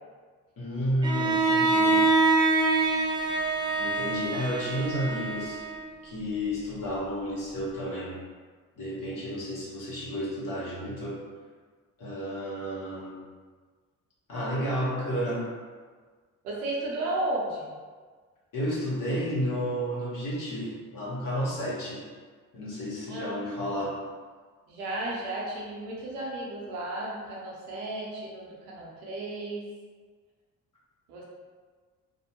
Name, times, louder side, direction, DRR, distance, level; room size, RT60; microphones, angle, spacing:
voice 1, 0.6-2.1 3.8-5.6 6.0-8.2 8.8-11.2 12.0-13.2 14.3-15.5 18.5-22.0 22.5-24.0, equal, 45° left, -6 dB, 1.0 m, -31 dB
Bowed string instrument, 1.0-6.0, right 3 dB, 10° right, 0.3 m, -25 dB
voice 2, 16.4-17.7 23.1-23.3 24.7-29.7 31.1-31.2, right 2 dB, 85° right, -3 dB, 0.7 m, -34 dB
2.6 x 2.0 x 2.8 m, 1.5 s
hypercardioid pair, 50°, 43 cm